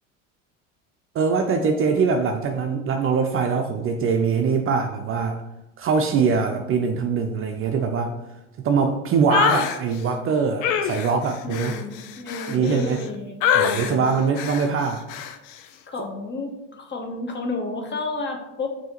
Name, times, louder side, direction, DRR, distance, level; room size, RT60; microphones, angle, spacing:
voice 1, 1.1-5.4 5.8-8.2 8.6-11.7 12.5-13.0 13.5-15.0, right 5 dB, 35° right, 5 dB, 0.4 m, -22 dB
sound 1, 9.3-9.8 10.6-13.0 13.4-13.9 14.4-14.7 15.1-15.3, left 8 dB, 60° left, 0.5 m, -24 dB
voice 2, 11.4-13.4 13.7-14.2 15.9-18.7, left 3 dB, 30° left, 3 dB, 0.8 m, -31 dB
5.4 x 2.8 x 2.9 m, 0.93 s
hypercardioid pair, 75°, 38 cm